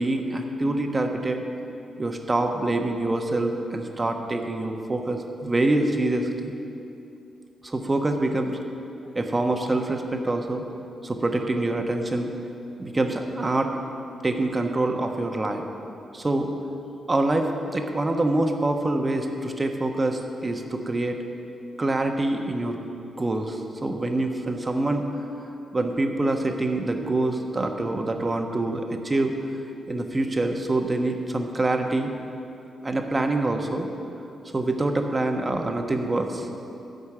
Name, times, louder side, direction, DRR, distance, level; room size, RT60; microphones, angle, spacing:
voice 1, 0.0-1.4 2.0-6.5 7.6-8.6 9.1-10.6 11.0-12.3 12.8-13.8 14.2-15.6 16.1-16.5 17.1-21.2 21.8-22.8 23.2-25.1 25.4-29.3 29.9-32.1 32.8-33.9 34.4-36.5, right 2 dB, 30° right, 4 dB, 1.2 m, -25 dB
13.0 x 5.3 x 7.4 m, 2.8 s
supercardioid pair, 55°, 0 cm